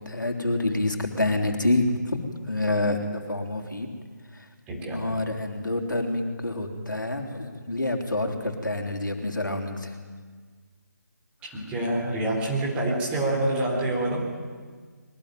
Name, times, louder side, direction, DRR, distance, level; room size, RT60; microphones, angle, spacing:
voice 1, 0.0-3.9 4.9-10.0, left 2 dB, 80° left, 3 dB, 3.4 m, -27 dB
voice 2, 4.7-5.2 11.4-14.3, right 1 dB, 10° right, -3 dB, 4.0 m, -27 dB
22.5 x 19.0 x 9.3 m, 1.5 s
figure-of-eight pair, 150°, 10 cm